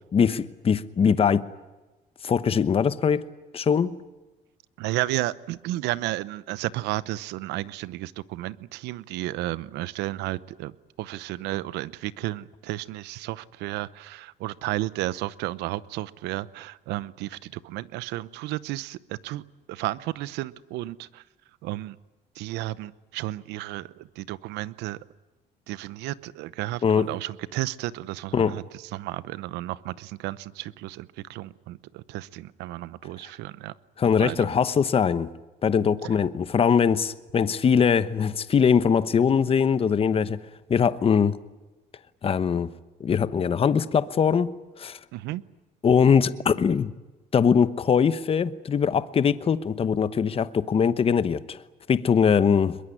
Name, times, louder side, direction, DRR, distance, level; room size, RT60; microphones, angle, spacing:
voice 1, 0.1-1.5 2.2-3.3 3.5-3.9 26.8-27.1 28.3-28.6 34.0-35.3 35.6-40.4 40.7-41.4 42.2-42.7 43.0-45.0 45.8-46.9 47.3-51.6 51.9-52.8, left 6 dB, 35° left, 1.0 m, -22 dB
voice 2, 4.8-10.7 11.0-19.4 19.7-21.2 21.6-22.0 22.4-25.0 25.7-33.7 34.2-34.5 45.1-45.4, right 16 dB, 90° right, 0.8 m, -33 dB
22.0 x 21.5 x 10.0 m
cardioid pair, 110°, 17 cm